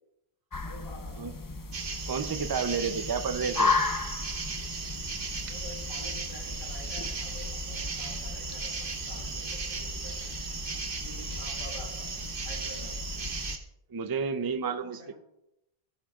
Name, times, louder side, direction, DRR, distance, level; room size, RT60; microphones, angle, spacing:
sound 1, 0.5-13.6, left 3 dB, 35° left, 0.3 m, -35 dB
voice 1, 0.6-1.3 5.4-10.3 11.0-12.1 12.4-12.9 15.0-15.2, left 1 dB, 85° left, -4 dB, 5.4 m, -48 dB
sound 2, 1.7-13.6, right 4 dB, 55° right, 1.2 m, -37 dB
voice 2, 2.1-3.8 13.9-15.1, right 5 dB, 30° right, 10 dB, 0.5 m, -31 dB
17.5 x 10.5 x 2.4 m, 0.84 s
omnidirectional pair, 1.1 m